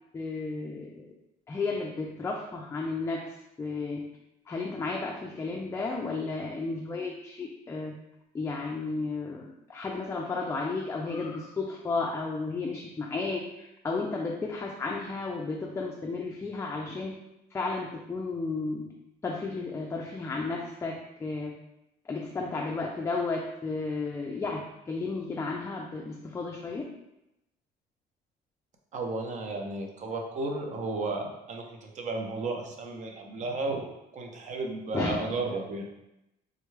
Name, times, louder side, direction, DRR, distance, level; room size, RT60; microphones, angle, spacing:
voice 1, 0.1-1.0 1.5-4.1 4.5-7.9 8.3-17.2 17.5-18.9 19.2-21.6 22.0-26.9 34.9-35.3, left 3 dB, 15° left, 0 dB, 0.3 m, -33 dB
voice 2, 28.9-33.8 34.1-35.9, right 3 dB, 45° right, 2 dB, 0.6 m, -33 dB
3.5 x 2.2 x 3.2 m, 0.88 s
cardioid pair, 110°, 17 cm